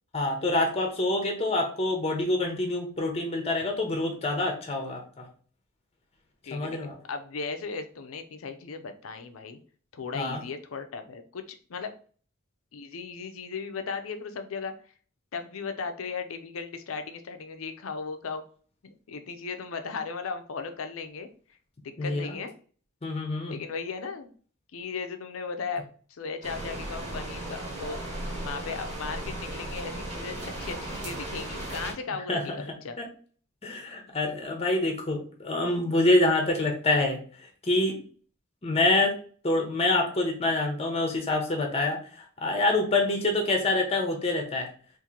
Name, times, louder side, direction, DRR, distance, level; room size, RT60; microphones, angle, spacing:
voice 1, 0.1-5.2 6.5-6.9 10.1-10.4 22.0-22.2 23.0-23.5 32.3-32.4 33.0-33.1 33.6-37.2 37.6-38.0 38.6-39.1 39.4-42.0 42.4-44.7, left 2 dB, 30° left, 3 dB, 0.7 m, -26 dB
voice 2, 6.4-9.6 9.9-11.9 12.7-14.7 15.3-18.4 18.8-21.3 22.0-22.5 23.5-24.3 24.7-25.8 26.1-28.0 28.4-33.0, left 5 dB, 80° left, 8 dB, 0.5 m, -36 dB
sound 1, 26.4-31.9, right 1 dB, 35° right, 1.2 m, -36 dB
2.9 x 2.6 x 3.7 m, 0.43 s
head